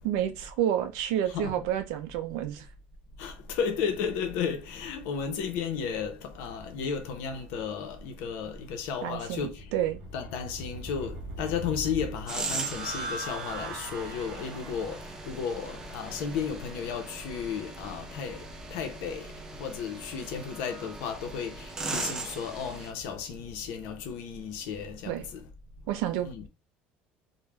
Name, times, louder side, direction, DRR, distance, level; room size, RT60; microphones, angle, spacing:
voice 1, 0.0-2.7 9.0-10.0 25.1-25.3 25.9-26.3, right 11 dB, 90° right, 0.5 m, -29 dB
voice 2, 1.3-1.7 3.2-9.6 10.1-18.4 18.7-25.4 26.2-26.5, left 6 dB, 80° left, 0.6 m, -34 dB
sound 1, 9.2-21.0, right 2 dB, 65° right, 0.8 m, -43 dB
sound 2, 12.3-22.9, right 3 dB, 15° right, 0.4 m, -40 dB
2.3 x 2.1 x 3.3 m
cardioid pair, 150°, 4 cm